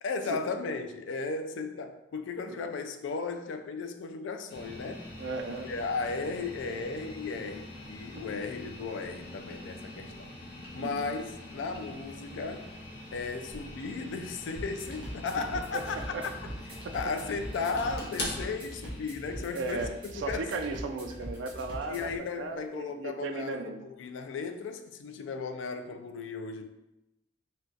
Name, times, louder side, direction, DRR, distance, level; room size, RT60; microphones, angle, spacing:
voice 1, 0.0-5.1 5.6-10.3 10.7-12.7 13.1-16.5 16.9-20.9 21.9-26.7, left 4 dB, 85° left, 8 dB, 0.3 m, -35 dB
sound 1, 4.5-22.6, left 1 dB, 60° left, 0.7 m, -44 dB
voice 2, 5.2-5.7 10.8-11.2 15.7-15.8 16.1-16.2 16.8-16.9 19.5-22.1 22.4-23.8, right 3 dB, 80° right, 7 dB, 0.3 m, -36 dB
sound 2, 14.6-22.2, equal, 25° right, 0.9 m, -42 dB
3.8 x 2.2 x 2.4 m, 0.93 s
head